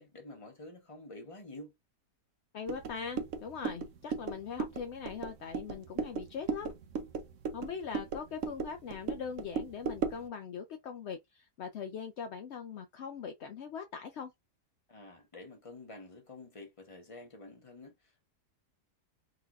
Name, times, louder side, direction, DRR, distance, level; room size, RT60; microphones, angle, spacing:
voice 1, 0.0-1.7 14.9-18.3, left 2 dB, 20° left, 1.1 m, -49 dB
voice 2, 2.5-6.7 7.5-14.3, left 6 dB, 70° left, 0.6 m, -41 dB
sound 1, 2.7-10.3, right 5 dB, 60° right, 0.9 m, -37 dB
3.9 x 2.9 x 2.4 m
omnidirectional pair, 1.7 m